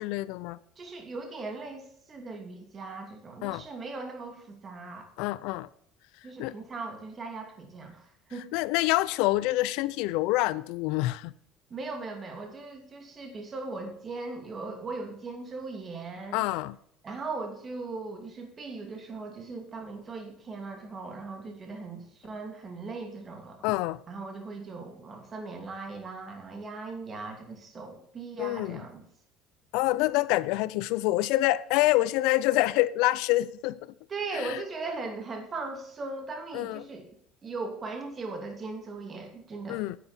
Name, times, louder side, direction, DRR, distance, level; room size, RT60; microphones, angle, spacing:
voice 1, 0.0-0.6 3.4-3.6 5.2-5.7 6.4-6.5 8.5-11.3 16.3-16.8 23.6-24.0 28.4-28.8 29.7-33.8 34.3-34.6 36.5-36.8 39.7-40.0, left 17 dB, 75° left, 0.5 m, -26 dB
voice 2, 0.8-5.1 6.2-8.5 11.7-16.5 17.0-23.6 24.1-29.0 34.1-37.1 37.4-39.8, right 3 dB, 25° right, 2.7 m, -39 dB
11.0 x 8.1 x 4.4 m
cardioid pair, 130°, 0 cm